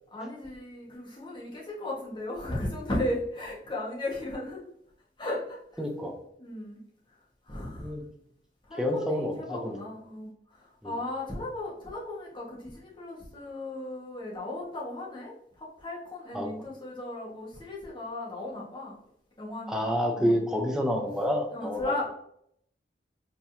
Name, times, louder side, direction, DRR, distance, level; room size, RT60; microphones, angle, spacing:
voice 1, 0.1-4.6 5.2-5.9 6.4-6.8 7.4-7.9 8.7-19.0 19.4-19.8 20.2-20.4 21.5-22.1, left 1 dB, 25° left, -5 dB, 1.4 m, -36 dB
voice 2, 5.8-6.1 7.8-8.0 8.8-9.8 10.8-10.9 16.3-16.5 19.7-22.1, equal, 5° right, 1 dB, 0.6 m, -28 dB
4.5 x 3.7 x 2.7 m, 0.70 s
head